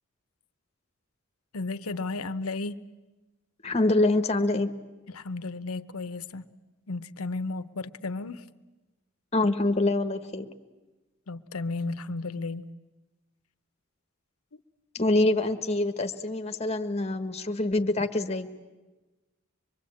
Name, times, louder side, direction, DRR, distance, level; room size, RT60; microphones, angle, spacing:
voice 1, 1.5-2.8 5.1-6.4 6.9-8.4 11.3-12.7, left 3 dB, 90° left, 11 dB, 0.9 m, -33 dB
voice 2, 3.6-4.7 9.3-10.5 14.9-18.5, left 2 dB, 30° left, 8 dB, 1.3 m, -25 dB
25.0 x 21.5 x 8.7 m, 1.1 s
head